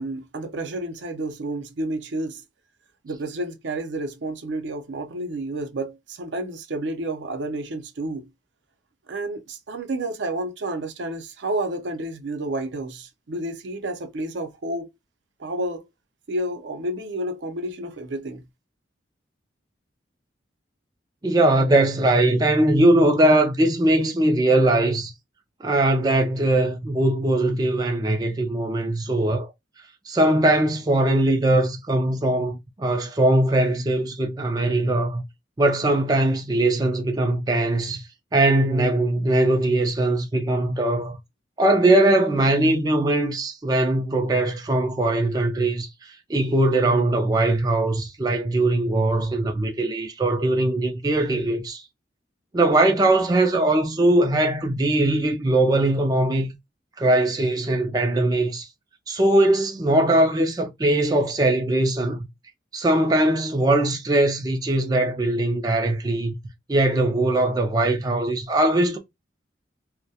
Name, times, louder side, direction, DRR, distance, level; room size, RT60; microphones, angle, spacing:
voice 1, 0.0-2.4 3.0-8.3 9.1-14.9 15.4-15.8 16.3-18.4, right 1 dB, 75° right, 0.5 m, -30 dB
voice 2, 21.2-25.1 25.6-29.5 30.1-35.2 35.6-38.0 38.3-41.2 41.6-51.8 52.5-56.5 57.0-58.7 59.1-62.2 62.7-66.3 66.7-69.0, right 1 dB, 20° right, 0.3 m, -21 dB
2.2 x 2.1 x 2.7 m
head